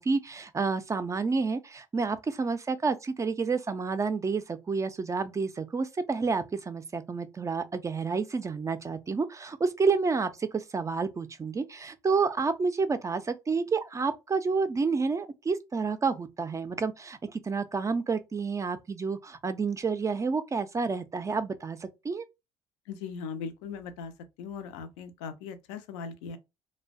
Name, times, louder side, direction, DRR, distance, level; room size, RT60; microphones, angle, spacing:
voice 1, 0.0-22.3, right 4 dB, 20° right, 0.3 m, -29 dB
voice 2, 22.9-24.1 24.4-26.4, left 5 dB, 70° left, 0.4 m, -39 dB
2.5 x 2.1 x 2.3 m
hypercardioid pair, 55°, 14 cm